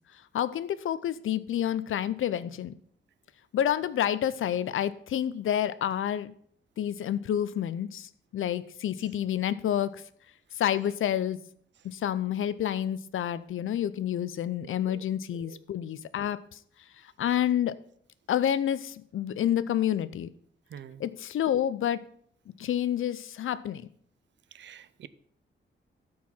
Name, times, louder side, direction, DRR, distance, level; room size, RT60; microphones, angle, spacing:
voice 1, 0.3-2.7 3.5-6.3 6.8-10.0 10.6-11.4 11.8-16.4 17.2-17.7 18.3-20.3 21.0-22.0 22.6-23.9, left 10 dB, 80° left, 16 dB, 0.6 m, -29 dB
voice 2, 14.6-15.0 15.3-15.6 20.7-21.0 24.5-25.1, right 9 dB, 60° right, 16 dB, 0.5 m, -47 dB
13.0 x 4.7 x 5.6 m, 0.62 s
wide cardioid pair, 175°, 21 cm